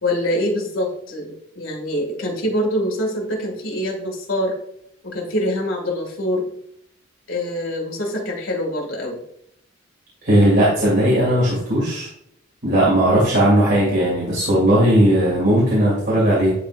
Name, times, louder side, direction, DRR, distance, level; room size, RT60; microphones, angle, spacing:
voice 1, 0.0-4.6 5.0-6.5 7.3-9.2, left 1 dB, 90° left, -1 dB, 2.0 m, -24 dB
voice 2, 10.2-12.1 12.6-16.5, right 1 dB, 55° right, -7 dB, 2.2 m, -17 dB
10.5 x 3.7 x 2.5 m, 0.73 s
head